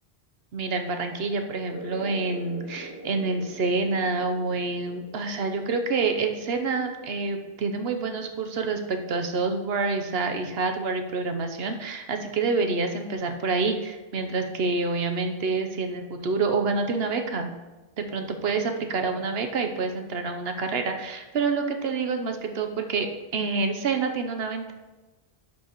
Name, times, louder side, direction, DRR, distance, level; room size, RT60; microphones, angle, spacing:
voice 1, 0.5-17.5 18.0-23.1 23.3-24.7, right 4 dB, 75° right, 5 dB, 1.0 m, -27 dB
sound 1, 1.7-8.8, right 1 dB, 25° right, 0.7 m, -44 dB
11.0 x 5.9 x 3.0 m, 1.1 s
omnidirectional pair, 1.1 m